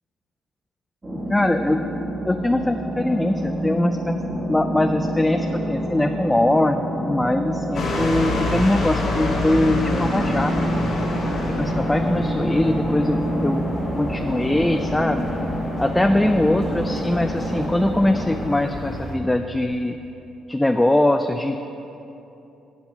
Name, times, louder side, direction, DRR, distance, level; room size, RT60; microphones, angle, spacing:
sound 1, 1.0-18.5, equal, 20° right, 1.2 m, -27 dB
voice 1, 1.3-1.8 2.2-4.2 4.5-10.5 11.5-13.6 13.9-15.3 15.8-20.0 20.5-21.7, left 1 dB, 10° left, 6 dB, 0.3 m, -22 dB
sound 2, 7.7-19.1, left 2 dB, 65° left, 1.6 m, -29 dB
7.6 x 7.1 x 5.4 m, 2.9 s
cardioid pair, 90°, 0 cm